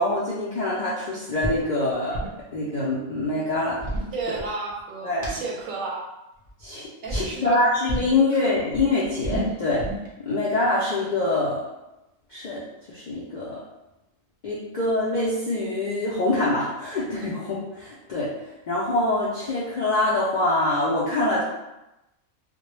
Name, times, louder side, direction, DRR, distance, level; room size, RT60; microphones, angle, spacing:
voice 1, 0.0-2.2 2.5-3.8 5.0-5.4 6.6-9.8 10.2-11.6 12.3-12.6 12.9-13.6 14.4-18.3 18.7-21.4, left 2 dB, 75° left, -8 dB, 0.4 m, -25 dB
sound 1, 1.4-1.6 1.9-2.4 3.5-4.8 5.2-5.3 6.4-6.7 7.1-7.3 7.9-8.2 8.5-10.1, right 1 dB, 45° right, 0.6 m, -30 dB
voice 2, 4.1-6.0 7.0-7.6 8.3-8.4, right 3 dB, 90° right, -1 dB, 1.0 m, -32 dB
2.1 x 2.1 x 3.0 m, 0.94 s
omnidirectional pair, 1.3 m